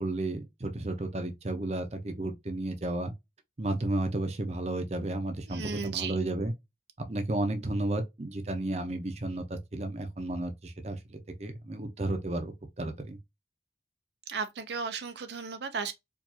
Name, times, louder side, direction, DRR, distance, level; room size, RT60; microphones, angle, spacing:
voice 1, 0.0-3.1 3.6-6.5 7.0-13.2, right 2 dB, 35° right, 0.7 m, -33 dB
voice 2, 5.5-6.2 14.3-15.9, right 5 dB, 75° right, 0.6 m, -35 dB
4.6 x 2.6 x 2.7 m
head